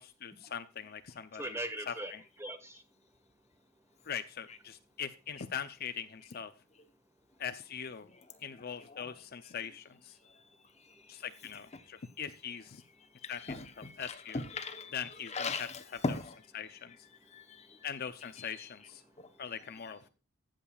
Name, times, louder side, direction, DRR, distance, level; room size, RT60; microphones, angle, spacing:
voice 1, 0.0-1.6 1.9-2.2 4.0-6.5 7.4-8.1 8.4-10.2 11.1-12.8 13.3-13.5 13.8-14.4 14.9-15.7 16.1-16.2 16.5-17.0 17.8-19.0 19.4-20.1, left 8 dB, 50° left, 0.6 m, -41 dB
voice 2, 1.3-2.8 10.9-11.0 13.4-13.5 15.1-15.4 16.3-16.4 16.8-17.3 17.6-18.4 18.8-20.1, right 1 dB, 15° right, 1.6 m, -45 dB
voice 3, 13.2-14.9 15.3-16.3 17.3-17.8, left 3 dB, 35° left, 1.0 m, -38 dB
15.0 x 7.5 x 2.4 m
head